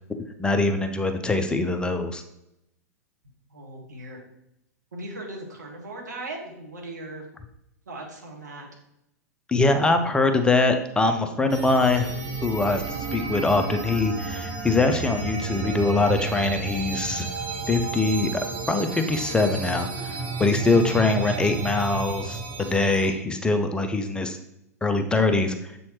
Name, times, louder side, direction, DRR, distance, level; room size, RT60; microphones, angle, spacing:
voice 1, 0.4-2.2 9.5-12.1 12.4-17.3 17.7-18.3 18.7-24.4 24.8-25.7, left 3 dB, 10° left, 7 dB, 0.5 m, -23 dB
voice 2, 3.5-4.2 4.9-7.2 7.9-8.7 20.8-21.0, right 2 dB, 75° right, 0 dB, 1.8 m, -38 dB
sound 1, 11.5-23.1, right 3 dB, 45° right, 1.5 m, -32 dB
7.4 x 4.2 x 3.1 m, 0.82 s
figure-of-eight pair, 95°, 9 cm